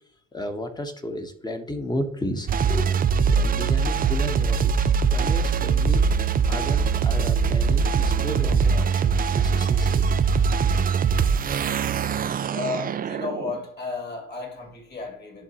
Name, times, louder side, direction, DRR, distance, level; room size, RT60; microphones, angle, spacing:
voice 1, 0.3-6.0 6.5-10.1, left 1 dB, 15° left, 1.2 m, -33 dB
sound 1, 2.5-13.6, right 6 dB, 30° right, 0.4 m, -22 dB
voice 2, 12.5-15.4, left 4 dB, 35° left, 2.5 m, -33 dB
10.5 x 3.8 x 3.0 m
supercardioid pair, 75°, 29 cm